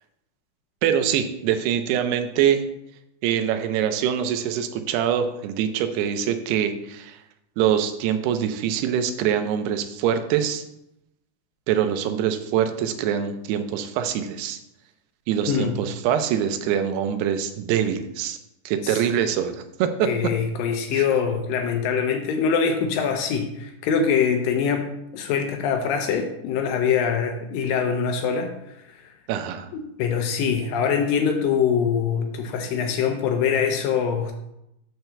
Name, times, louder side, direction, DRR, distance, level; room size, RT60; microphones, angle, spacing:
voice 1, 0.8-2.6 3.2-7.2 7.6-10.6 11.7-14.6 15.3-18.4 18.7-20.1 20.9-21.0 29.3-29.7, right 9 dB, 85° right, 8 dB, 2.7 m, -24 dB
voice 2, 20.0-28.5 29.7-34.4, left 6 dB, 80° left, 5 dB, 2.1 m, -23 dB
6.6 x 4.5 x 6.7 m, 0.85 s
omnidirectional pair, 4.6 m